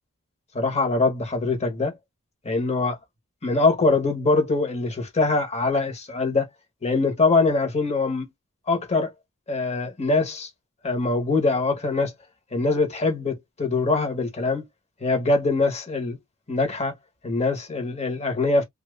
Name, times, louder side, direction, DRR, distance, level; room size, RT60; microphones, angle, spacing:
voice 1, 0.5-1.9 2.4-3.0 3.4-6.5 6.8-8.2 8.7-9.1 9.5-10.5 10.8-12.1 12.5-14.6 15.0-16.2 16.5-16.9 17.2-18.6, left 3 dB, 30° left, 1.2 m, -23 dB
2.9 x 2.5 x 3.2 m
head